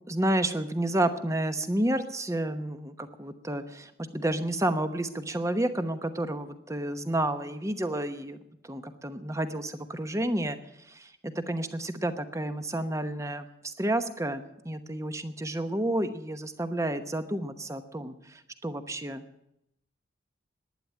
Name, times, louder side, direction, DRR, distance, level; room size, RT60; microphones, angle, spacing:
voice 1, 0.1-8.4 8.6-19.2, right 1 dB, 15° right, 9 dB, 1.0 m, -30 dB
11.5 x 10.0 x 9.9 m, 0.84 s
head